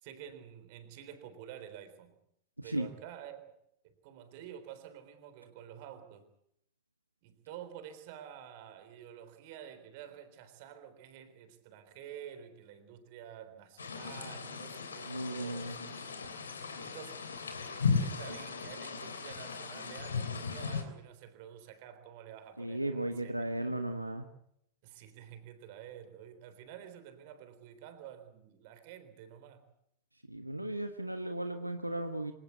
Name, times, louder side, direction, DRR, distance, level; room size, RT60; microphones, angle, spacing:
voice 1, 0.0-2.2 2.6-3.5 3.8-6.3 7.2-15.8 16.8-17.2 17.6-23.8 24.8-29.7, right 9 dB, 50° right, 10 dB, 3.7 m, -50 dB
voice 2, 2.6-2.9 15.1-15.8 22.6-24.3 30.3-32.3, right 1 dB, 85° right, 7 dB, 1.3 m, -35 dB
sound 1, 13.8-20.8, left 5 dB, 75° left, 3.3 m, -36 dB
25.5 x 18.0 x 8.3 m, 0.74 s
figure-of-eight pair, 90°, 0 cm